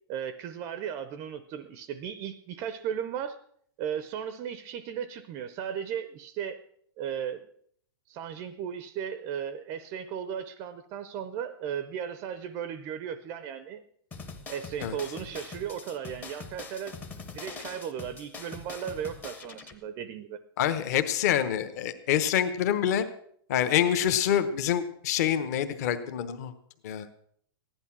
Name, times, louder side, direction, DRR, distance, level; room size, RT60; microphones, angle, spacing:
voice 1, 0.1-3.4 3.8-6.6 7.0-7.5 8.1-13.8 14.5-16.9 17.3-20.4, right 8 dB, 20° right, 12 dB, 0.5 m, -36 dB
sound 1, 14.1-19.7, left 4 dB, 10° left, 0.7 m, -43 dB
voice 2, 20.6-23.1 23.5-26.5 26.8-27.1, left 10 dB, 40° left, 11 dB, 1.0 m, -26 dB
15.5 x 11.0 x 6.0 m, 0.64 s
supercardioid pair, 170°, 13 cm